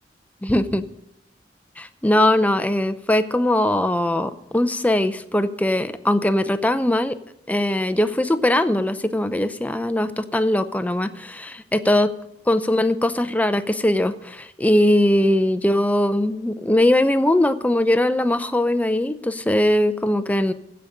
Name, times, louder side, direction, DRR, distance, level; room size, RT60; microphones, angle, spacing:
voice 1, 0.4-0.8 1.8-7.2 7.5-12.1 12.5-20.5, left 1 dB, 10° left, 11 dB, 0.5 m, -20 dB
15.5 x 5.2 x 8.7 m, 0.80 s
head